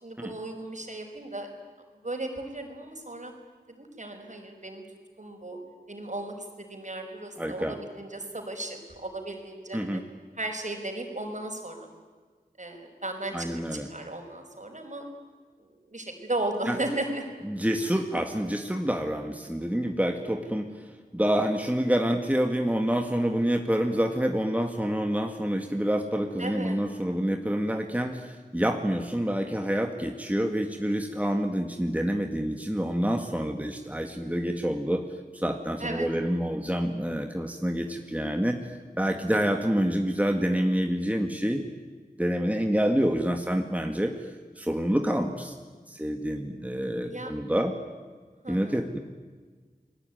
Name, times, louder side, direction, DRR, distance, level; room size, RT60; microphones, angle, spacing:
voice 1, 0.0-1.5 2.0-3.3 3.7-4.8 5.2-5.6 5.9-10.0 10.4-11.9 12.6-13.5 13.7-15.0 15.6-17.2 26.4-26.8 35.8-36.1 39.3-39.6 47.1-47.3 48.4-48.8, right 2 dB, 50° right, 4 dB, 5.4 m, -35 dB
voice 2, 7.4-7.8 9.7-10.0 13.3-13.9 16.7-16.8 17.5-35.0 35.3-41.6 42.2-44.1 44.6-45.5 45.9-47.7 48.5-49.0, equal, 10° right, 4 dB, 2.0 m, -27 dB
30.0 x 20.0 x 9.4 m, 1.5 s
wide cardioid pair, 40°, 16 cm